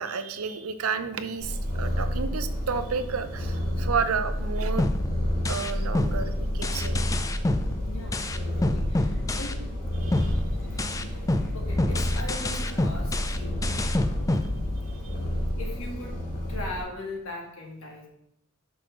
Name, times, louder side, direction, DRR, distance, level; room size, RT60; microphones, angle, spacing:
voice 1, 0.0-4.9 5.5-7.0 10.0-10.4 15.0-15.1, right 5 dB, 85° right, 10 dB, 0.7 m, -31 dB
Purr, 1.4-16.8, equal, 45° left, 2.5 m, -30 dB
sound 1, 4.8-9.8 10.1-15.1, left 2 dB, 15° left, 0.4 m, -28 dB
voice 2, 7.8-9.7 11.0-11.3 11.5-14.6 15.6-18.1, left 1 dB, 65° left, 0 dB, 2.1 m, -40 dB
6.2 x 4.7 x 6.1 m, 0.73 s
head